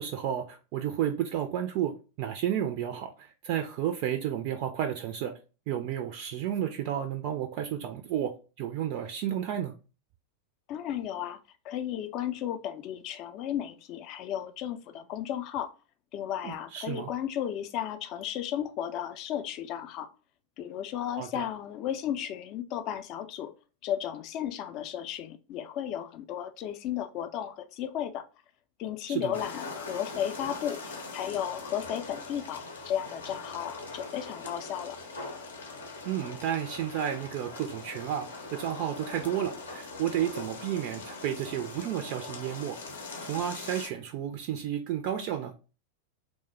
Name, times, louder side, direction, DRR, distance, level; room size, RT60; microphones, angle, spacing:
voice 1, 0.0-5.3 5.7-9.7 16.4-17.1 21.2-21.5 29.1-29.4 36.0-42.8 43.2-45.5, right 10 dB, 45° right, 0.3 m, -32 dB
voice 2, 10.7-11.4 11.6-15.7 16.1-20.1 20.6-23.5 23.8-28.2 28.8-35.0, left 10 dB, 40° left, 0.4 m, -34 dB
sound 1, 29.3-43.9, left 3 dB, 70° left, 0.7 m, -41 dB
3.1 x 2.0 x 3.0 m
figure-of-eight pair, 90°, 0 cm